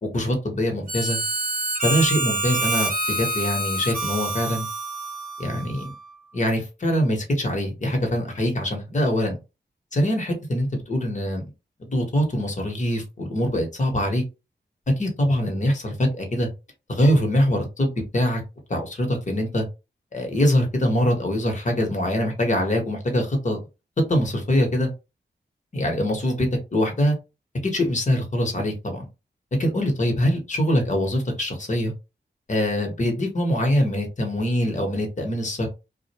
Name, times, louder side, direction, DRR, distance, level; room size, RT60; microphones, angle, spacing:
voice 1, 0.1-1.2 1.8-2.9 3.2-4.7 5.4-5.9 6.3-9.4 9.9-11.4 11.8-14.2 15.0-16.5 16.9-18.4 18.7-19.7 20.1-23.6 24.1-24.9 25.7-27.2 27.6-29.0 29.6-31.9 32.5-35.7, equal, 45° left, 3 dB, 1.0 m, -23 dB
Harmonica, 0.9-6.1, right 2 dB, 50° right, 0.7 m, -27 dB
2.4 x 2.1 x 2.8 m, 0.27 s
cardioid pair, 60°, 18 cm